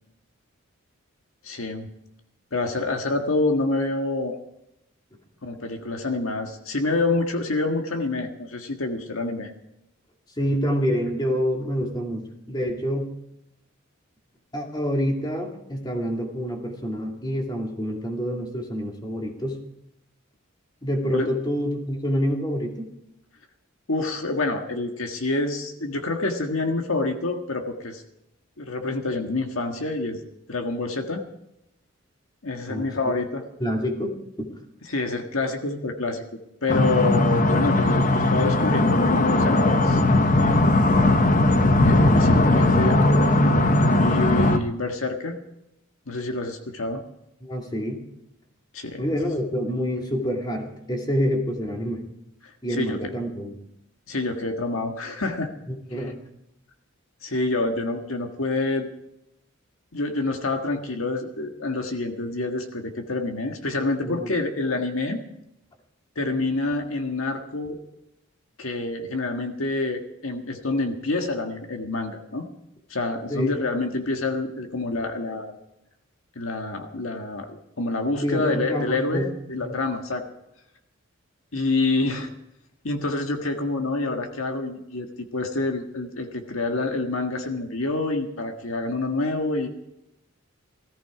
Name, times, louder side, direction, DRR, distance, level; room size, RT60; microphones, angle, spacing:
voice 1, 1.4-1.9 2.5-4.4 5.4-9.5 21.1-21.3 23.9-28.0 28.6-30.2 30.5-31.2 32.4-33.4 34.9-36.2 36.6-40.0 40.4-40.7 41.7-45.4 46.1-47.0 48.7-49.0 52.4-53.1 54.1-55.5 57.2-58.9 59.9-65.2 66.1-67.8 68.6-72.4 72.9-75.5 76.3-80.2 81.5-82.3 82.8-85.1 85.3-89.7, left 2 dB, 75° left, 4 dB, 1.7 m, -27 dB
voice 2, 10.4-13.1 14.5-19.6 20.8-22.9 32.7-33.2 33.6-34.6 47.4-48.0 49.0-52.0 52.6-53.6 55.7-56.2 64.0-64.3 73.3-73.6 78.2-79.3 79.6-79.7, equal, 20° left, 2 dB, 2.3 m, -27 dB
sound 1, 36.7-44.6, left 2 dB, 40° left, 1.0 m, -19 dB
17.5 x 14.5 x 4.9 m, 0.82 s
head